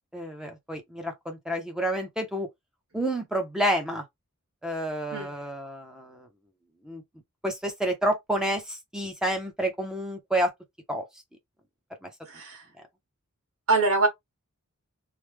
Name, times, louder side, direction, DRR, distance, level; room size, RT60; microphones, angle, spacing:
voice 1, 0.1-2.5 2.9-4.0 4.6-6.3 6.8-7.0 7.4-10.5 10.9-11.0 12.0-12.1, right 1 dB, 5° right, 0.5 m, -29 dB
voice 2, 12.3-12.6 13.7-14.1, right 3 dB, 75° right, 1.4 m, -24 dB
3.2 x 2.0 x 3.2 m
head